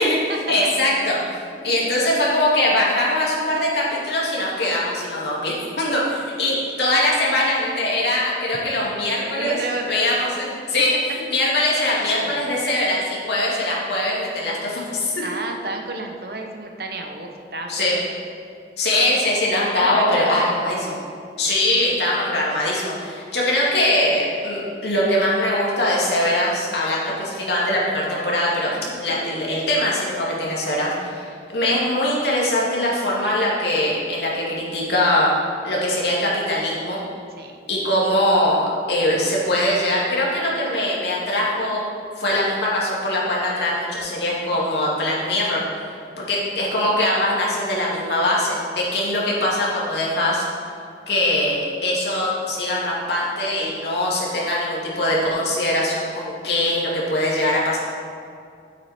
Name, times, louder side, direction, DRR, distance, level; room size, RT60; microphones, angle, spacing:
voice 1, 0.5-1.3 1.6-9.6 9.9-15.2 17.7-17.9 18.8-21.0 21.4-31.3 31.5-35.3 35.6-37.0 37.7-41.8 42.2-45.6 46.2-50.5 51.1-57.8, left 1 dB, 75° left, -5 dB, 2.5 m, -22 dB
voice 2, 9.4-10.3 12.0-12.4 15.2-18.1 19.7-20.6 21.5-21.6 28.7-28.9 37.4-37.6 46.1-46.3, right 2 dB, 60° right, 3 dB, 1.0 m, -31 dB
9.5 x 8.6 x 4.4 m, 2.4 s
head